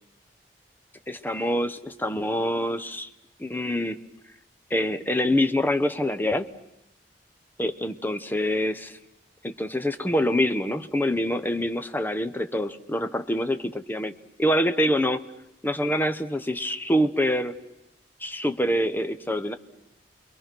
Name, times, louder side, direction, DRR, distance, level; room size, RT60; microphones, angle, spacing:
voice 1, 1.1-3.1 3.4-4.0 4.7-6.5 7.6-9.0 9.4-14.1 14.4-15.2 15.6-17.5 18.2-19.6, equal, 10° left, 9 dB, 0.9 m, -25 dB
29.5 x 22.0 x 6.1 m, 0.87 s
head